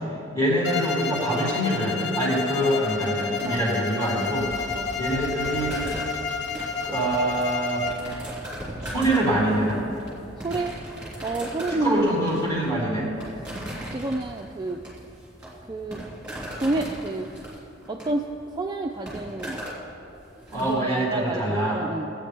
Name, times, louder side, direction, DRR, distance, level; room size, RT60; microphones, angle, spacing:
voice 1, 0.3-4.5 5.0-5.9 6.8-7.8 8.8-9.8 11.7-13.1 20.5-21.8, right 1 dB, 15° left, -6 dB, 2.6 m, -25 dB
Bowed string instrument, 0.6-8.1, left 5 dB, 60° left, 0.6 m, -30 dB
sound 1, 3.4-20.7, equal, 5° right, 2.3 m, -38 dB
voice 2, 3.4-3.8 4.7-4.9 10.4-10.8 11.2-12.2 13.9-14.8 15.7-16.0 16.6-17.3 17.9-18.3 18.5-19.6 20.6-22.1, right 2 dB, 20° right, 2 dB, 0.3 m, -29 dB
17.0 x 8.5 x 3.4 m, 2.8 s
head